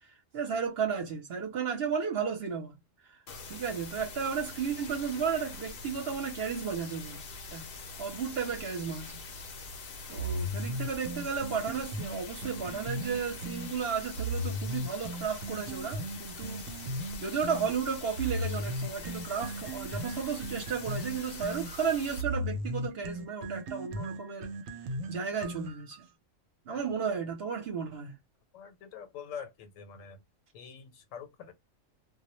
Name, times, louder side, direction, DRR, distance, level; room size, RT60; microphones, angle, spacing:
voice 1, 0.3-2.8 3.5-7.2 7.5-7.7 8.0-9.1 10.1-16.6 17.2-24.5 25.1-26.1 26.7-28.1, right 6 dB, 60° right, 0.8 m, -33 dB
sound 1, 3.3-22.2, left 3 dB, 60° left, 0.6 m, -44 dB
sound 2, 10.2-13.7 14.2-17.7 18.2-26.0, equal, 90° right, 1.0 m, -36 dB
voice 2, 28.5-29.5 29.8-30.2 30.5-31.5, left 7 dB, 85° left, 1.0 m, -44 dB
2.1 x 2.1 x 2.9 m
omnidirectional pair, 1.3 m